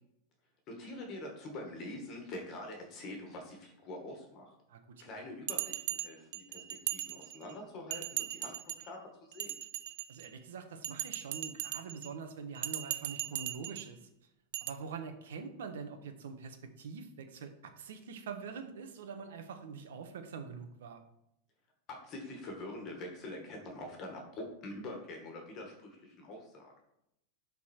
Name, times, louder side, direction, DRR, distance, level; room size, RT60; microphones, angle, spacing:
voice 1, 0.7-4.5 5.0-9.5 21.9-26.7, left 1 dB, 25° left, 2 dB, 1.7 m, -45 dB
Bell, 5.5-7.5 7.9-8.9 9.3-10.3 10.8-12.1 12.6-13.9 14.5-14.7, right 14 dB, 55° right, 0.4 m, -38 dB
voice 2, 10.1-14.1 14.6-21.0, right 5 dB, 85° right, 7 dB, 1.3 m, -44 dB
11.5 x 4.1 x 4.5 m, 0.81 s
supercardioid pair, 170°, 0 cm